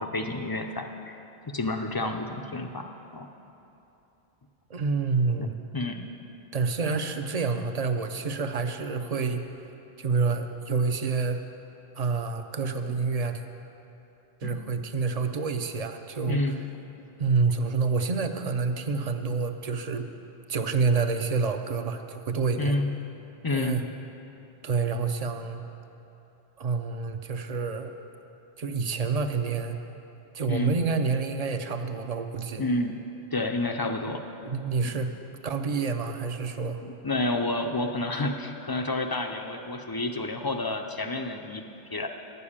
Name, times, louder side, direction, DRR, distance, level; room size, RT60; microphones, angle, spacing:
voice 1, 0.0-3.3 5.4-5.5 5.7-6.1 14.4-14.6 16.3-16.6 22.6-22.9 23.4-23.8 30.5-30.7 32.6-33.0 33.3-34.2 34.9-35.0 36.8-41.6 41.9-42.1, left 2 dB, 35° left, 5 dB, 0.4 m, -30 dB
voice 2, 4.7-5.5 6.5-9.5 10.0-11.4 12.0-13.4 14.4-16.6 17.2-20.1 20.5-22.8 23.5-23.8 24.6-25.6 26.6-27.9 28.6-30.0 30.3-32.6 34.1-34.2 34.4-35.1 35.4-36.8, right 4 dB, 45° right, 7 dB, 0.6 m, -28 dB
11.0 x 6.9 x 8.6 m, 2.9 s
omnidirectional pair, 1.1 m